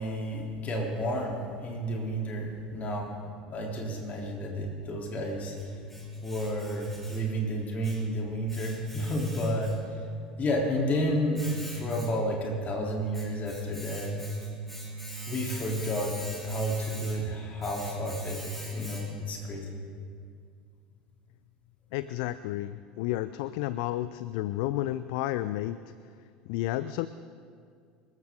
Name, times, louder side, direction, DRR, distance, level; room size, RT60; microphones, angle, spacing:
voice 1, 0.0-3.1 3.5-5.6 6.2-9.7 10.4-11.4 11.7-14.2 15.3-16.1 16.4-18.4 18.7-19.8, equal, 30° left, -1 dB, 3.5 m, -31 dB
Domestic sounds home sounds, 5.0-19.4, left 1 dB, 5° left, 3.0 m, -39 dB
voice 2, 21.9-25.8 26.5-27.1, left 15 dB, 55° left, 15 dB, 0.4 m, -31 dB
25.0 x 14.0 x 3.8 m, 2.2 s
figure-of-eight pair, 70°, 5 cm